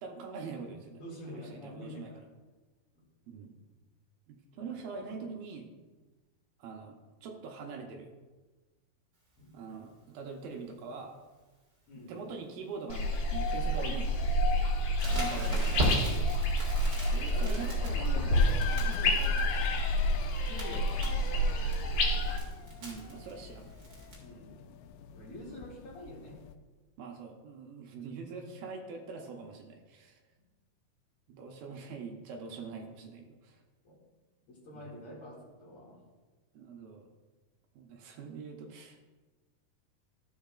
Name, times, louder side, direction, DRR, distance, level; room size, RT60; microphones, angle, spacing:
voice 1, 0.0-1.0 1.3-2.1 3.3-3.6 4.3-5.7 6.6-8.1 9.5-11.2 12.1-14.4 15.1-16.1 17.1-18.3 18.7-19.0 22.8-23.7 27.0-30.2 31.3-33.6 34.7-34.8 36.5-37.1 37.8-39.1, right 5 dB, 75° right, 2 dB, 2.5 m, -43 dB
voice 2, 0.9-2.2 2.9-3.0 4.5-5.3 9.4-9.6 11.9-12.2 15.1-15.7 17.3-17.8 18.3-19.7 20.4-21.7 24.2-24.7 25.1-26.4 33.8-34.0 34.5-36.0, left 1 dB, 40° left, -5 dB, 2.7 m, -47 dB
sound 1, 12.9-22.4, equal, 65° left, 2.3 m, -29 dB
Crackle, 15.0-24.1, right 1 dB, 35° right, 2.1 m, -38 dB
sound 2, 18.3-26.5, left 10 dB, 90° left, 2.0 m, -43 dB
14.0 x 7.3 x 2.4 m, 1.3 s
omnidirectional pair, 4.5 m